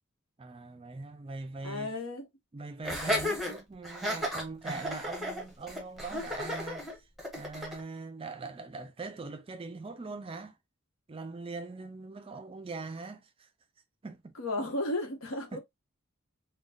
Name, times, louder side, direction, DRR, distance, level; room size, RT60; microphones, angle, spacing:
voice 1, 0.4-1.9 2.5-6.9 7.3-10.6 11.1-13.5 14.0-14.3 15.5-15.6, right 3 dB, 25° right, 0.4 m, -42 dB
voice 2, 1.6-2.3 14.4-15.6, left 1 dB, 75° left, 1.1 m, -34 dB
Laughter, 2.8-7.8, equal, ahead, 1.0 m, -34 dB
3.9 x 2.2 x 2.3 m
head